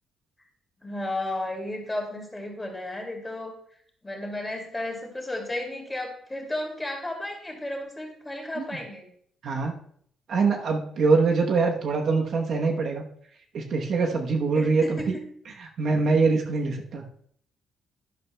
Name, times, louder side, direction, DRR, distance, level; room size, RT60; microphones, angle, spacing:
voice 1, 0.8-3.5 4.0-9.1 14.5-15.2, left 1 dB, 10° left, 1 dB, 2.5 m, -33 dB
voice 2, 9.4-9.7 10.3-13.1 13.5-15.2 15.6-17.0, right 4 dB, 55° right, 2 dB, 1.0 m, -24 dB
11.5 x 11.0 x 2.3 m, 0.64 s
cardioid pair, 140°, 0 cm